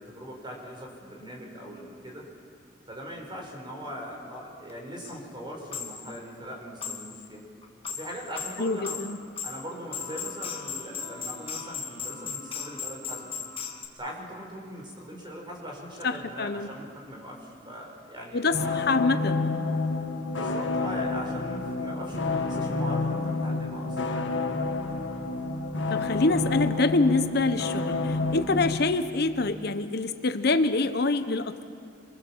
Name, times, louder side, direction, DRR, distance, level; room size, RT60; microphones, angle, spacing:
voice 1, 0.0-2.3 2.9-7.4 7.9-9.0 9.4-13.3 13.9-18.7 20.3-24.0, equal, 25° right, 0 dB, 5.0 m, -40 dB
sound 1, 4.7-4.8 5.0-5.2 5.7-6.2 6.8-7.3 7.6-13.9, left 6 dB, 30° left, 1.6 m, -37 dB
voice 2, 8.6-9.2 16.0-16.7 18.3-19.5 25.9-31.6, left 3 dB, 60° left, 9 dB, 0.9 m, -26 dB
sound 2, 18.5-28.8, left 3 dB, 80° left, 1.7 m, -29 dB
27.0 x 23.0 x 7.3 m, 2.3 s
head